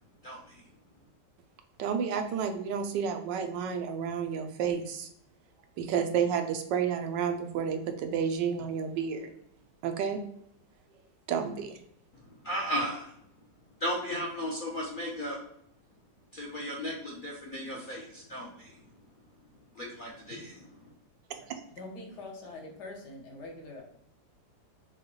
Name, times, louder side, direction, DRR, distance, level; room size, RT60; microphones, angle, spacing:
voice 1, 0.2-0.6 12.4-13.1 13.8-15.4 16.3-18.7 19.8-20.7, equal, 50° left, -3 dB, 0.6 m, -35 dB
voice 2, 1.8-5.1 5.8-9.3 9.8-10.2 11.3-11.8 21.3-21.6, right 7 dB, 85° right, 6 dB, 1.3 m, -31 dB
voice 3, 21.8-23.8, left 2 dB, 70° left, 0 dB, 1.5 m, -43 dB
6.2 x 2.2 x 3.1 m, 0.72 s
omnidirectional pair, 1.9 m